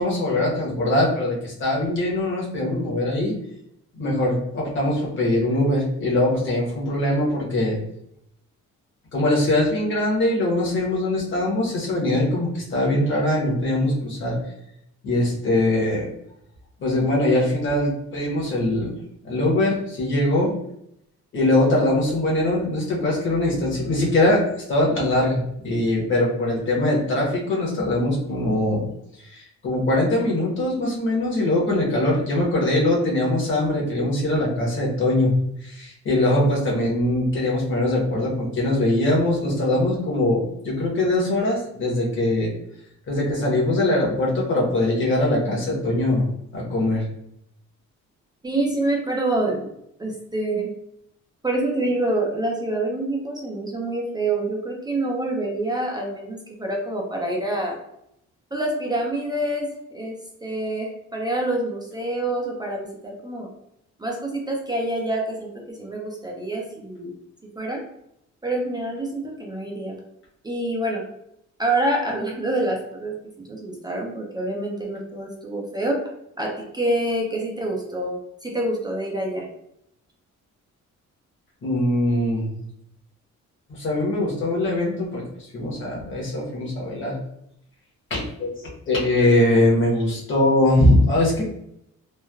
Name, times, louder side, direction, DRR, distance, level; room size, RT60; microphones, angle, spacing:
voice 1, 0.0-3.3 3.9-7.8 9.1-14.4 15.0-16.1 16.8-18.9 19.2-20.5 21.3-24.4 24.7-28.8 29.2-35.3 35.6-42.5 43.1-46.2 46.5-47.0 81.6-82.5 83.7-85.2 85.5-87.2 88.1-88.5 88.9-91.4, left 1 dB, 40° left, -4 dB, 1.0 m, -22 dB
voice 2, 48.4-49.7 50.0-50.7 51.4-57.8 58.5-60.1 60.4-63.5 64.0-67.1 67.6-67.8 68.4-70.0 70.4-71.0 71.6-73.1 73.5-76.0 76.4-78.2 78.4-79.5, right 1 dB, 15° right, -1 dB, 0.3 m, -26 dB
3.1 x 2.2 x 2.3 m, 0.77 s
cardioid pair, 155°, 29 cm